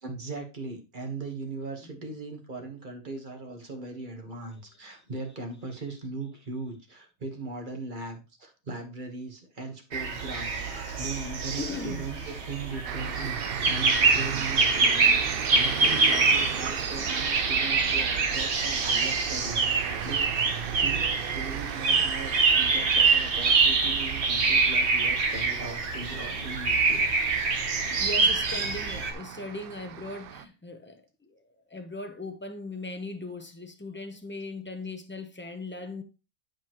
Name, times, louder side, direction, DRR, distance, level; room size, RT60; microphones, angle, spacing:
voice 1, 0.0-13.4 13.7-20.3 20.7-28.2, right 3 dB, 35° right, 1.4 m, -39 dB
sound 1, 9.9-29.1, right 4 dB, 50° right, 1.2 m, -25 dB
voice 2, 11.5-12.1 27.5-36.0, left 3 dB, 10° left, 0.5 m, -39 dB
sound 2, 12.9-30.5, right 9 dB, 85° right, 0.5 m, -37 dB
9.5 x 5.2 x 3.0 m
omnidirectional pair, 1.6 m